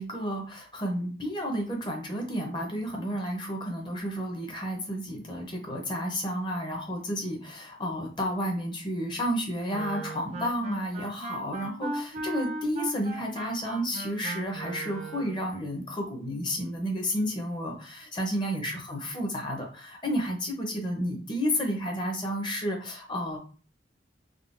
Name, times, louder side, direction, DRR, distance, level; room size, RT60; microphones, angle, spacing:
voice 1, 0.0-23.4, equal, 25° left, 1 dB, 0.6 m, -31 dB
Wind instrument woodwind instrument, 9.7-15.4, right 2 dB, 35° right, 0.4 m, -37 dB
3.6 x 2.1 x 2.5 m, 0.37 s
head